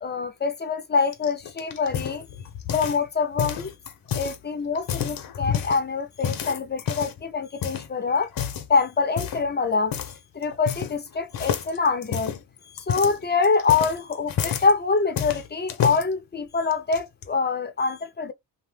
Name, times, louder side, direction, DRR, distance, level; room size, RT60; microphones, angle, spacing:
voice 1, 0.0-2.3 2.7-3.7 4.1-8.3 8.7-9.9 10.3-12.3 12.7-18.3, left 4 dB, 25° left, 0.7 m, -25 dB
sound 1, 1.1-3.1 3.4-4.4 4.7-5.8 6.2-7.2 7.6-7.9 8.3-8.7 9.2-9.5 9.9-10.2 10.4-11.1 11.3-14.7 15.2-16.0 16.7-17.2, left 8 dB, 60° left, 0.7 m, -29 dB
2.6 x 2.1 x 3.2 m
cardioid pair, 85°, 39 cm